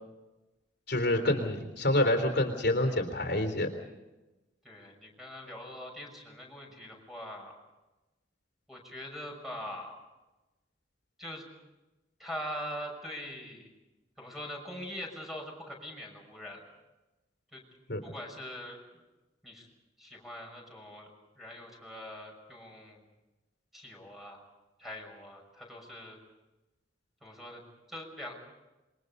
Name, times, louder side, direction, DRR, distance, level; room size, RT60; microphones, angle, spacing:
voice 1, 0.9-3.7 17.9-18.0, left 1 dB, 65° left, 4 dB, 3.4 m, -27 dB
voice 2, 4.6-7.6 8.7-10.0 11.2-11.4 12.2-13.7 14.2-16.6 17.5-17.6 18.0-19.0 19.4-19.7 20.0-21.1 21.4-23.0 23.7-24.5 24.8-26.2 27.2-27.6 27.9-28.3, equal, ahead, 0 dB, 6.1 m, -42 dB
27.5 x 23.0 x 5.4 m, 1.1 s
head